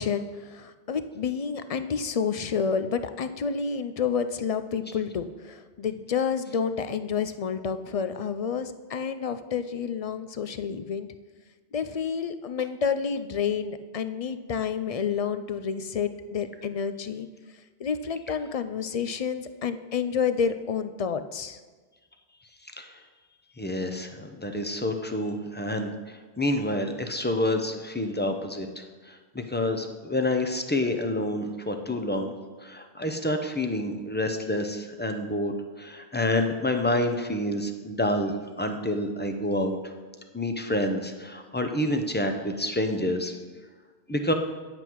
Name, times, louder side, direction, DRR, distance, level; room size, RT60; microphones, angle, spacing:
voice 1, 0.0-11.1 11.7-17.3 17.8-21.6, left 6 dB, 50° left, 11 dB, 0.4 m, -29 dB
voice 2, 23.6-25.9 26.4-28.8 29.3-32.3 32.6-39.8 40.3-43.3 44.1-44.3, left 1 dB, 10° left, 5 dB, 0.7 m, -28 dB
9.9 x 7.8 x 4.6 m, 1.4 s
omnidirectional pair, 1.0 m